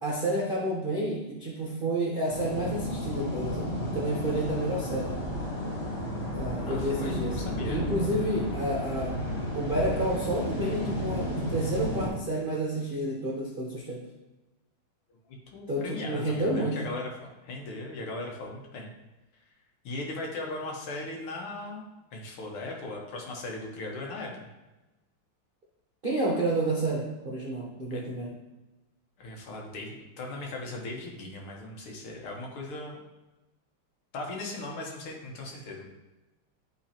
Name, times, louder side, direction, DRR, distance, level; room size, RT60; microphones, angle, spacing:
voice 1, 0.0-5.2 6.3-9.2 9.5-14.1 15.7-16.9 26.0-28.3, right 1 dB, 50° right, -4 dB, 0.6 m, -30 dB
sound 1, 2.3-12.1, equal, 35° left, 1.7 m, -32 dB
voice 2, 6.7-7.8 15.5-18.9 19.8-21.8 22.1-24.5 27.9-28.0 29.2-33.0 34.1-35.8, left 2 dB, 80° left, 0 dB, 2.1 m, -38 dB
11.0 x 3.9 x 2.9 m, 1.1 s
omnidirectional pair, 2.4 m